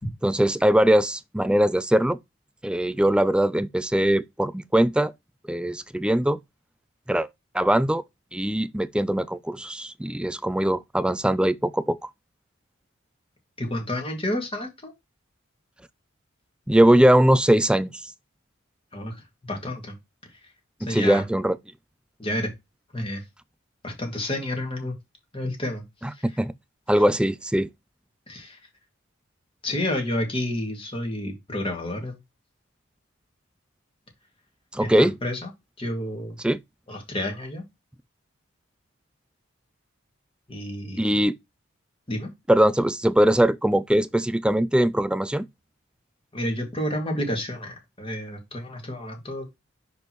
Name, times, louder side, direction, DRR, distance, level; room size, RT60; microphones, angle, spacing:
voice 1, 0.2-2.2 2.6-5.1 5.5-6.4 7.1-7.3 7.5-8.0 8.3-12.1 16.7-18.1 20.9-21.6 26.0-26.5 26.9-27.7 34.7-35.1 36.4-36.6 41.0-41.4 42.5-45.5, right 1 dB, 5° right, 0.3 m, -21 dB
voice 2, 13.6-14.9 18.9-19.9 20.3-20.5 20.8-21.2 22.2-22.5 22.9-23.2 23.8-24.9 25.3-25.8 26.1-26.4 26.9-27.0 28.3-28.6 29.6-32.2 34.8-35.5 35.8-36.4 36.9-37.6 40.5-41.2 42.1-42.3 46.3-49.6, left 1 dB, 25° left, 2.1 m, -30 dB
6.1 x 5.3 x 3.1 m
head